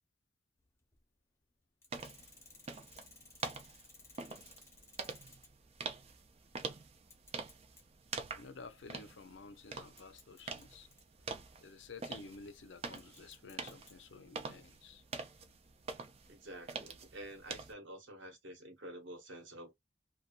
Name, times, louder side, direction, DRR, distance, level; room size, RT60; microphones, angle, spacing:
sound 1, 0.6-1.0 1.8-5.7 6.0-6.1 6.9-7.9 8.4-8.6 9.5-9.6 10.0-11.0 12.9-13.9, left 3 dB, 15° left, 0.7 m, -59 dB
sound 2, 1.9-17.7, right 4 dB, 35° right, 0.4 m, -46 dB
voice 1, 8.3-10.9 11.6-15.0, left 4 dB, 75° left, 0.5 m, -52 dB
voice 2, 16.3-19.8, right 1 dB, 85° right, 1.1 m, -49 dB
2.6 x 2.2 x 2.3 m
head